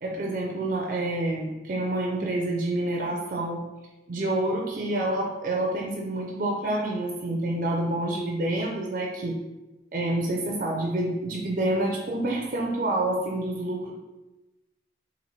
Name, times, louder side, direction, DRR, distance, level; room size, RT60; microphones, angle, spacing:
voice 1, 0.0-3.6 4.1-9.4 9.9-13.9, right 1 dB, 50° right, 0 dB, 0.4 m, -28 dB
4.0 x 2.6 x 3.0 m, 1.1 s
head